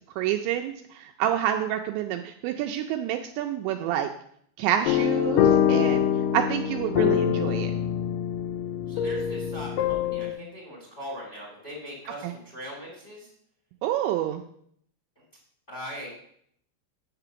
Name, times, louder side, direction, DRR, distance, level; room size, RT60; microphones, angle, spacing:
voice 1, 0.2-4.1 4.6-6.1 6.3-7.7 12.2-12.3 13.8-14.4, right 11 dB, 85° right, 4 dB, 2.7 m, -28 dB
sound 1, 4.9-10.3, left 9 dB, 85° left, 2.3 m, -24 dB
voice 2, 8.9-13.3 15.7-16.1, equal, 15° left, -3 dB, 2.0 m, -40 dB
8.1 x 6.0 x 6.8 m, 0.68 s
omnidirectional pair, 5.5 m